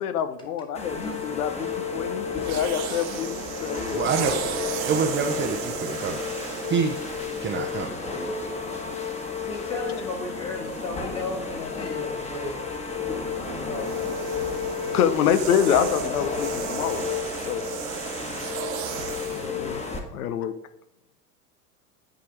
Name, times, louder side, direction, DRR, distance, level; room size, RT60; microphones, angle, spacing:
voice 1, 0.0-4.3 14.9-17.0 17.5-17.7 19.3-19.8 20.1-20.5, left 9 dB, 70° left, 11 dB, 1.0 m, -26 dB
sound 1, 0.7-20.0, left 5 dB, 15° left, 1.5 m, -32 dB
voice 2, 0.9-1.4 9.4-12.6 13.7-14.0 15.1-16.2, left 3 dB, 30° left, -4 dB, 2.1 m, -34 dB
sound 2, 2.4-7.9 8.7-8.9 12.9-19.6, right 10 dB, 60° right, 1.1 m, -35 dB
voice 3, 3.9-6.2 6.7-7.0 7.4-7.9, right 6 dB, 25° right, 2 dB, 0.8 m, -27 dB
10.0 x 5.0 x 4.7 m, 0.81 s
figure-of-eight pair, 80°, 47 cm